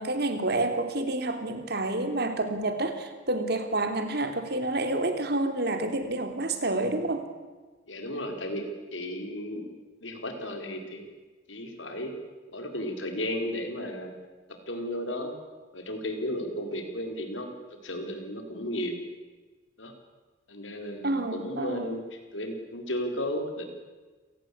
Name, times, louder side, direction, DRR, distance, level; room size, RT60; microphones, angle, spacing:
voice 1, 0.0-7.2 21.0-22.0, right 2 dB, 55° right, 7 dB, 3.1 m, -29 dB
voice 2, 7.9-8.7 8.9-9.7 10.0-11.1 11.5-12.1 12.5-14.1 14.7-15.4 15.7-17.5 17.8-19.0 19.8-19.9 20.5-22.0 22.3-23.6, left 1 dB, 85° left, 4 dB, 4.8 m, -34 dB
28.0 x 18.5 x 8.7 m, 1.3 s
head